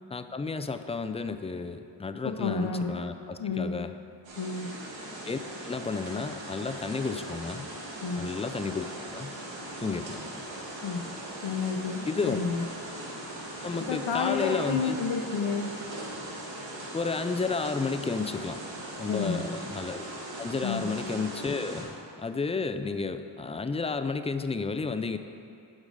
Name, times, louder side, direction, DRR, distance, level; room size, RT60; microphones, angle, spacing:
voice 1, 0.1-3.9 5.3-7.7 8.2-8.9 9.1-9.3 9.8-10.2 12.0-12.4 13.6-15.0 16.9-18.6 19.0-20.0 20.4-25.2, left 4 dB, 15° left, 9 dB, 0.4 m, -32 dB
voice 2, 2.2-3.0 3.4-3.7 4.3-4.7 8.0-8.3 10.8-11.0 11.4-12.6 13.9-15.7 19.1-19.5 20.6-20.8, left 5 dB, 80° left, 1 dB, 0.8 m, -30 dB
sound 1, 4.2-21.8, right 1 dB, 85° right, 2.1 m, -40 dB
9.8 x 5.3 x 6.4 m, 2.6 s
cardioid pair, 65°, 45 cm